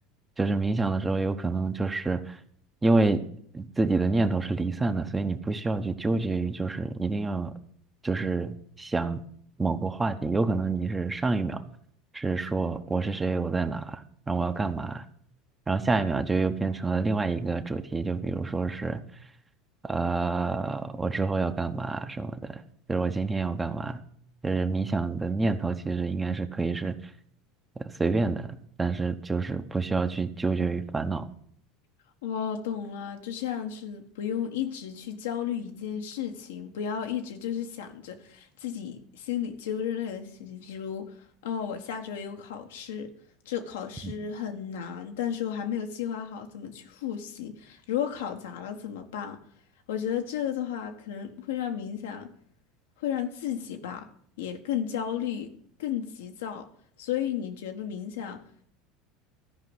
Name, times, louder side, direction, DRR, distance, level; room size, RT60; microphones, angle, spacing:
voice 1, 0.4-2.4 2.8-3.2 3.5-7.5 8.0-9.2 9.6-11.6 12.1-14.0 14.3-15.0 15.7-19.0 19.8-22.6 22.9-24.0 24.4-27.0 27.8-28.5 28.8-31.3 44.0-44.1, right 3 dB, 15° right, 1.0 m, -27 dB
voice 2, 32.2-41.1 41.4-43.1 43.4-49.4 49.9-52.3 53.0-54.1 54.4-55.5 55.8-56.7 57.0-58.4, left 9 dB, 85° left, 1.4 m, -33 dB
13.5 x 5.1 x 8.0 m
supercardioid pair, 100°, 0 cm